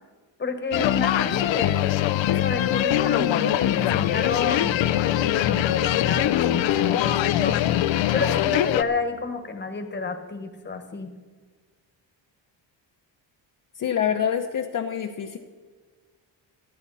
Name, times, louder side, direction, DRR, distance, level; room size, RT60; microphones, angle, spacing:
voice 1, 0.4-1.8 2.3-7.6 8.1-11.1, left 4 dB, 25° left, 7 dB, 1.4 m, -30 dB
sound 1, 0.7-8.8, left 12 dB, 85° left, 0.7 m, -22 dB
voice 2, 13.8-15.4, left 8 dB, 45° left, 2 dB, 1.0 m, -26 dB
26.5 x 9.6 x 4.1 m, 1.5 s
wide cardioid pair, 170°, 44 cm